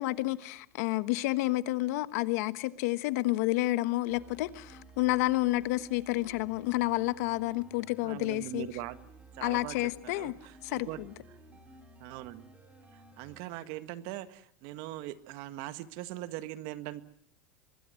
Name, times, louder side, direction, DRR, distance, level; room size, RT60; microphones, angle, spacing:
voice 1, 0.0-8.7 9.4-10.3 10.6-11.1, left 19 dB, 70° left, 1.3 m, -30 dB
sound 1, 4.1-13.4, right 2 dB, 15° right, 5.7 m, -55 dB
voice 2, 8.0-9.0 9.3-11.0 11.5-11.6 12.0-12.5 12.9-17.0, right 15 dB, 60° right, 1.8 m, -41 dB
24.5 x 21.0 x 7.7 m
supercardioid pair, 125°, 9 cm